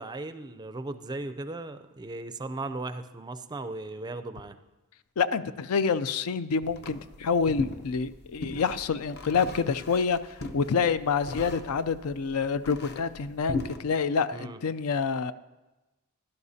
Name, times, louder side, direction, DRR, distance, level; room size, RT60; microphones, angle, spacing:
voice 1, 0.0-4.6 14.3-14.6, right 2 dB, 20° right, 10 dB, 0.4 m, -37 dB
voice 2, 5.2-10.2 10.5-15.3, left 5 dB, 75° left, 14 dB, 0.4 m, -27 dB
sound 1, 6.6-13.8, left 3 dB, 50° left, 0.7 m, -38 dB
16.0 x 12.0 x 2.7 m, 1.1 s
head